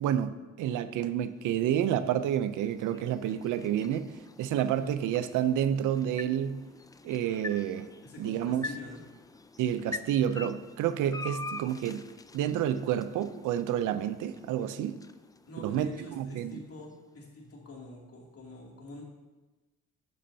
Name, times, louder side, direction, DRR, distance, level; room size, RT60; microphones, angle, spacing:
voice 1, 0.0-6.7 7.0-7.9 8.2-8.7 9.6-12.0 12.3-15.0 15.6-16.6, right 10 dB, 90° right, 12 dB, 0.6 m, -29 dB
sound 1, 1.1-17.3, left 3 dB, 10° left, 0.4 m, -46 dB
voice 2, 8.0-9.0 15.5-19.0, left 2 dB, 50° left, -2 dB, 2.7 m, -46 dB
10.5 x 8.5 x 2.8 m, 1.2 s
cardioid pair, 90°, 30 cm